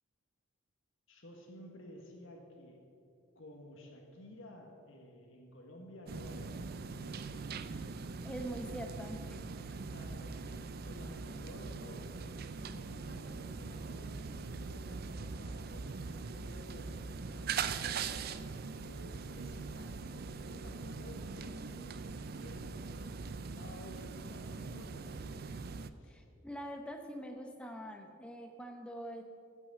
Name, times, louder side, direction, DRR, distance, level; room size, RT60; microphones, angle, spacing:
voice 1, 1.1-2.8 3.3-6.6 6.9-7.3 9.7-12.2 12.7-18.2 18.8-25.4 26.0-26.2, left 1 dB, 60° left, 1 dB, 1.5 m, -53 dB
sound 1, 6.1-25.9, right 4 dB, 45° right, 0.4 m, -42 dB
voice 2, 8.2-9.4 26.0-29.2, equal, 5° left, 4 dB, 0.8 m, -44 dB
14.0 x 6.2 x 7.5 m, 2.5 s
head